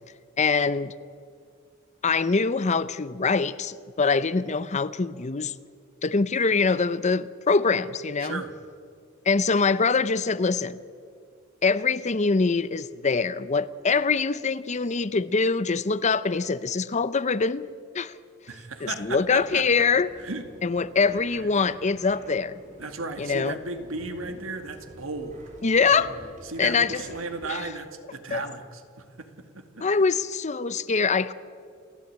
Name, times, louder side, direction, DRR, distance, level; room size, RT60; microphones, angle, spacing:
voice 1, 0.4-0.9 2.0-5.5 6.0-8.4 9.3-10.8 11.6-18.2 18.8-20.1 20.6-22.6 23.2-23.6 25.6-26.2 26.6-27.0 27.5-27.7 28.3-28.4 29.8-31.3, left 4 dB, 35° left, 0.6 m, -24 dB
voice 2, 8.2-8.5 18.5-19.7 20.2-20.4 22.8-25.4 26.4-29.9, right 3 dB, 75° right, 2.2 m, -35 dB
sound 1, 18.8-27.5, equal, 35° right, 5.2 m, -47 dB
28.5 x 13.5 x 8.8 m
head